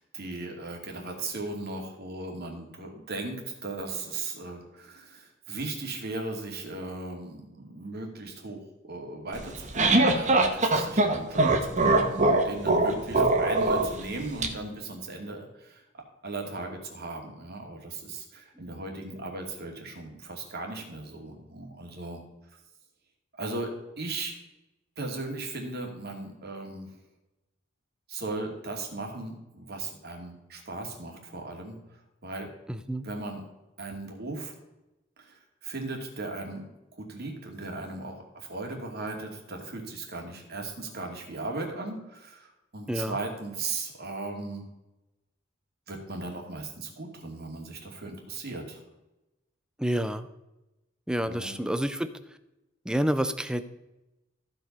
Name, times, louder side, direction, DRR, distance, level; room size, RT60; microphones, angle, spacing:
voice 1, 0.0-22.2 23.4-23.7 24.0-24.3 25.0-27.0 28.1-32.5 33.0-33.4 33.8-34.6 35.2-36.6 36.9-44.7 45.9-48.8 51.2-51.6, right 2 dB, 55° right, 1 dB, 2.5 m, -37 dB
sound 1, 9.4-14.5, right 2 dB, 40° right, 1.3 m, -23 dB
voice 2, 32.7-33.1 42.9-43.2 49.8-50.3 51.1-52.1 52.8-53.6, equal, 5° right, 11 dB, 0.6 m, -28 dB
14.5 x 5.2 x 5.3 m, 0.98 s
head